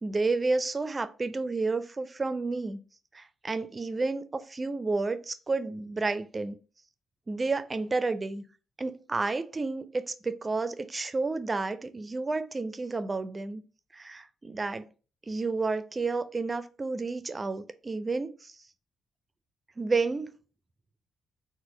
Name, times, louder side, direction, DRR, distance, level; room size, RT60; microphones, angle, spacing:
voice 1, 0.0-2.8 3.1-6.6 7.3-8.4 8.8-13.6 13.9-14.9 15.3-18.6 19.8-20.3, right 3 dB, 35° right, 0.4 m, -31 dB
4.2 x 2.1 x 3.1 m
hypercardioid pair, 45°, 0 cm